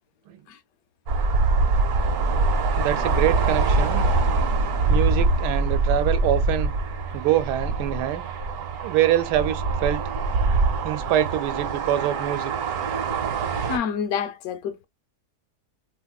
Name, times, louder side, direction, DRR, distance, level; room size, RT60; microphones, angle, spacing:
sound 1, 1.1-13.8, right 3 dB, 55° right, 1.2 m, -23 dB
voice 1, 2.8-4.0 4.9-6.7 7.1-8.2 8.8-10.1 10.8-12.7, right 12 dB, 85° right, 1.2 m, -25 dB
voice 2, 13.7-14.9, left 7 dB, 70° left, 0.9 m, -28 dB
3.5 x 3.0 x 2.2 m
omnidirectional pair, 1.8 m